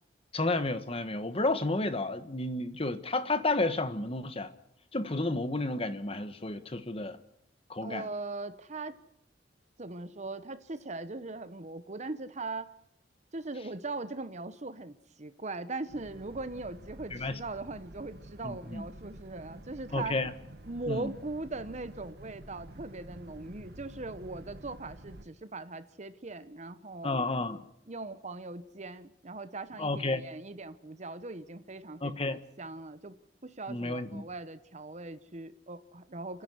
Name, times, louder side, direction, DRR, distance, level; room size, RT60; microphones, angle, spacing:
voice 1, 0.3-4.5 4.9-7.2 7.7-8.1 17.1-17.4 18.4-18.8 19.9-20.3 20.9-21.1 27.0-27.6 29.8-30.2 32.0-32.4 33.7-34.2, left 2 dB, 30° left, 1.3 m, -31 dB
voice 2, 7.8-9.0 9.8-12.7 13.3-20.1 20.7-27.2 27.9-33.1 33.4-36.4, right 3 dB, 40° right, 1.0 m, -40 dB
Boat Water vehicle, 15.9-25.3, right 1 dB, 60° right, 1.6 m, -49 dB
29.5 x 10.5 x 9.7 m
head